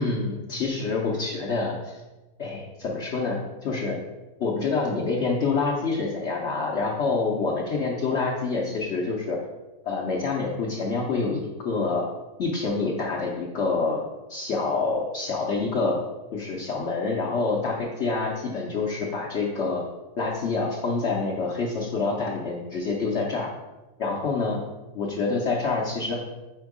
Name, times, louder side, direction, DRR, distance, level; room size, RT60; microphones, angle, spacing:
voice 1, 0.0-2.0 2.4-4.0 4.4-9.4 9.8-12.1 12.4-14.0 14.3-16.0 16.3-19.8 20.2-23.5 24.0-24.6 24.9-26.2, left 4 dB, 60° left, -2 dB, 0.7 m, -27 dB
4.5 x 4.4 x 4.8 m, 1.1 s
omnidirectional pair, 2.0 m